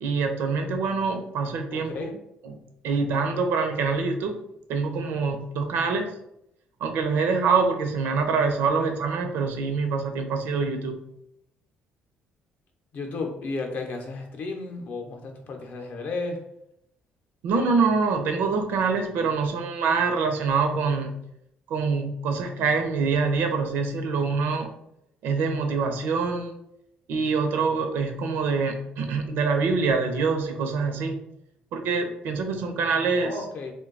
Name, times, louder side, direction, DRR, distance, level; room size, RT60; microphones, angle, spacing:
voice 1, 0.0-2.1 2.4-2.6 2.8-4.4 4.7-6.1 6.8-11.0 17.4-21.1 21.7-24.7 25.2-26.5 27.1-31.2 31.7-33.3, right 4 dB, 80° right, 5 dB, 0.5 m, -25 dB
voice 2, 1.7-2.1 8.7-8.9 12.9-16.4 33.2-33.7, left 3 dB, 55° left, 3 dB, 0.6 m, -33 dB
2.6 x 2.2 x 3.8 m, 0.78 s
cardioid pair, 145°, 3 cm